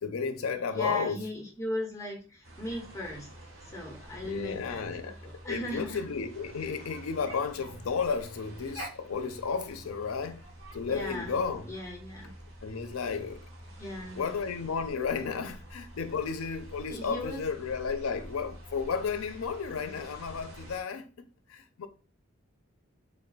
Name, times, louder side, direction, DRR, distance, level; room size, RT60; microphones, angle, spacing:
voice 1, 0.0-1.2 4.2-5.2 5.5-10.5 10.7-11.7 12.6-13.4 14.1-21.9, left 5 dB, 90° left, 0.5 m, -33 dB
voice 2, 0.7-3.3 3.6-6.0 10.8-11.4 11.6-12.3 13.8-14.2 16.9-17.5, left 1 dB, 15° left, 1.0 m, -38 dB
sound 1, 2.4-20.8, right 1 dB, 80° right, 1.3 m, -47 dB
3.5 x 2.2 x 3.9 m
head